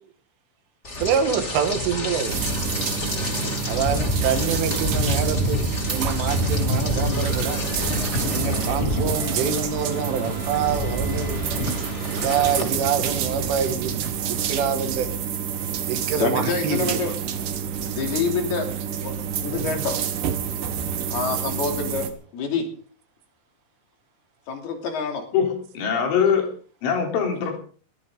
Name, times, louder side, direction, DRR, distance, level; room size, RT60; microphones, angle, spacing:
Rain, 0.8-12.6, left 1 dB, 25° left, 1.6 m, -27 dB
voice 1, 1.0-2.4 3.7-5.6 5.9-7.6 8.3-11.4 12.1-14.0 14.3-15.1 15.9-17.1, right 7 dB, 80° right, 6 dB, 4.7 m, -26 dB
sound 1, 2.3-22.1, right 8 dB, 60° right, 2.4 m, -29 dB
sound 2, 5.5-14.3, right 5 dB, 40° right, 9.3 m, -38 dB
voice 2, 16.2-17.1 17.9-20.0 21.1-22.7 24.5-25.3, left 5 dB, 55° left, 3 dB, 4.7 m, -27 dB
voice 3, 25.3-26.5 26.8-27.6, left 7 dB, 75° left, 2 dB, 6.2 m, -22 dB
22.0 x 15.5 x 3.9 m, 0.41 s
omnidirectional pair, 5.6 m